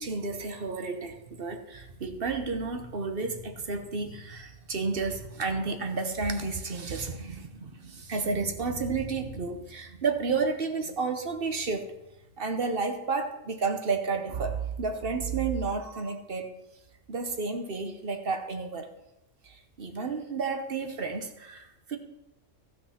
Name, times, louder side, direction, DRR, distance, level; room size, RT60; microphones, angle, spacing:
voice 1, 0.0-11.8 12.4-16.5 17.1-18.9 19.4-22.0, right 4 dB, 50° right, 6 dB, 1.2 m, -31 dB
13.5 x 6.1 x 5.8 m, 0.91 s
omnidirectional pair, 1.3 m